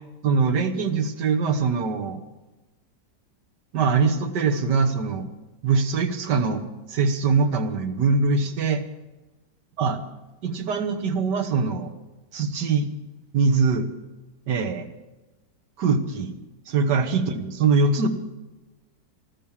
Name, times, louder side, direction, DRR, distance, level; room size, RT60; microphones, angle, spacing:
voice 1, 0.2-2.2 3.7-5.3 5.6-8.8 9.8-10.0 10.4-11.9 12.3-12.9 13.3-13.9 14.5-14.9 15.8-16.3 16.7-18.1, right 4 dB, 70° right, 7 dB, 1.9 m, -22 dB
14.5 x 12.5 x 7.3 m, 1.1 s
omnidirectional pair, 1.9 m